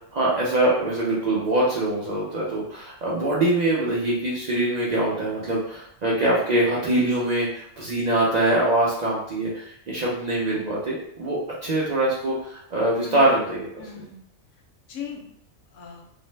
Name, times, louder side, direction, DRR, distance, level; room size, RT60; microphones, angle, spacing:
voice 1, 0.1-13.7, right 1 dB, 70° right, -6 dB, 0.4 m, -23 dB
voice 2, 12.9-14.2 14.9-15.2 15.7-16.0, left 6 dB, 70° left, 0 dB, 0.9 m, -38 dB
2.5 x 2.0 x 3.1 m, 0.70 s
omnidirectional pair, 1.4 m